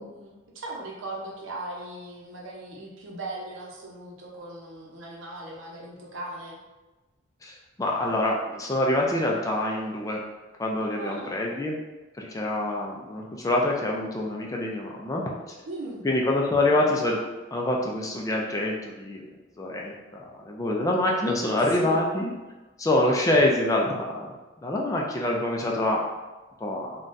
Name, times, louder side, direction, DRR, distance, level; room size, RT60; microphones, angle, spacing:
voice 1, 0.0-6.6 10.9-11.5 15.7-16.1 21.7-22.1, right 2 dB, 80° right, -2 dB, 0.7 m, -38 dB
voice 2, 7.4-10.2 10.6-11.8 12.2-15.6 16.0-17.2 17.5-19.3 19.6-19.9 20.5-22.3 22.8-24.3 24.6-26.0 26.6-27.0, left 1 dB, 15° left, -1 dB, 0.3 m, -25 dB
3.8 x 2.3 x 2.5 m, 1.2 s
head